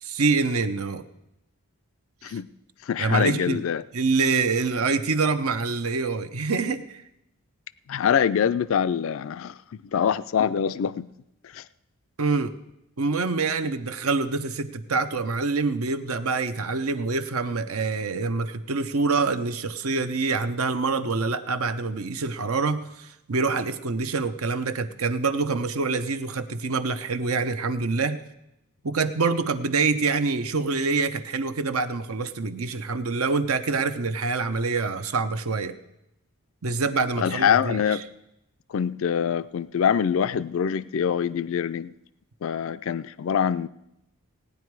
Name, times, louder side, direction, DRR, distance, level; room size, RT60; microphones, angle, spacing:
voice 1, 0.0-1.0 2.2-2.4 3.0-3.6 3.9-7.0 12.2-12.5 13.0-28.2 28.8-35.7 36.6-38.0, right 4 dB, 75° right, 10 dB, 0.8 m, -26 dB
voice 2, 2.9-3.8 7.9-9.6 9.9-11.1 11.5-11.6 37.2-38.0 38.7-41.9 42.4-43.7, left 8 dB, 65° left, 16 dB, 0.3 m, -24 dB
17.5 x 9.7 x 4.7 m, 0.86 s
head